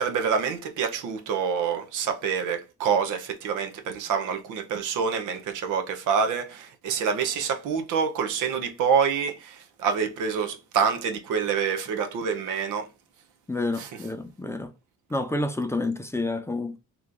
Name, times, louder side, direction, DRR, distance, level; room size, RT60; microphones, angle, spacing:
voice 1, 0.0-12.9 13.8-14.0, right 6 dB, 85° right, 0.7 m, -27 dB
voice 2, 13.5-14.7 15.1-16.8, left 2 dB, 10° left, 0.6 m, -29 dB
3.0 x 2.5 x 3.7 m
cardioid pair, 90°, 30 cm